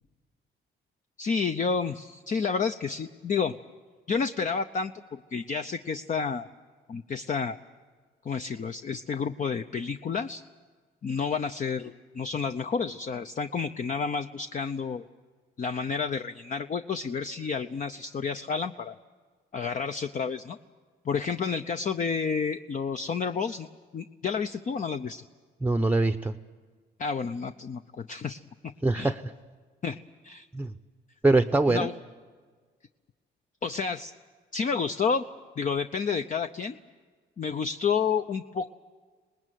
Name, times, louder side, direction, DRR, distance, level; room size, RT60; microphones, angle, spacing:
voice 1, 1.2-3.6 4.1-6.5 6.9-7.6 8.2-10.4 11.0-15.0 15.6-19.0 19.5-20.6 21.0-23.7 23.9-25.2 27.0-28.4 28.9-29.1 29.8-30.0 30.2-30.5 31.7-31.9 33.6-34.1 34.5-35.2 35.6-36.8 37.4-38.7, left 5 dB, 40° left, 9 dB, 0.7 m, -30 dB
voice 2, 25.6-26.3 28.8-29.3 30.5-30.7 31.2-31.9, right 2 dB, 10° right, 8 dB, 0.7 m, -23 dB
25.0 x 20.0 x 9.2 m, 1.5 s
cardioid pair, 90°, 20 cm